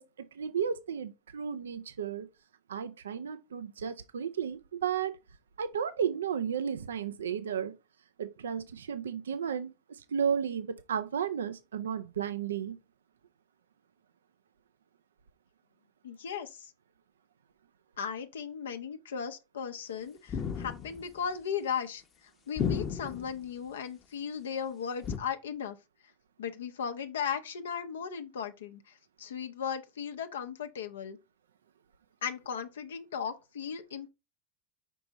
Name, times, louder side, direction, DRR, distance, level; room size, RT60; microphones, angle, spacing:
voice 1, 0.0-2.3 2.7-5.2 5.6-7.8 8.2-12.8, right 7 dB, 85° right, 0.4 m, -33 dB
voice 2, 16.0-16.7 18.0-25.8 26.4-31.2 32.2-34.1, left 7 dB, 80° left, 0.6 m, -37 dB
sound 1, 20.3-21.1 22.6-23.4 25.0-25.2, left 7 dB, 35° left, 0.8 m, -33 dB
5.2 x 4.5 x 3.9 m
hypercardioid pair, 90°, 0 cm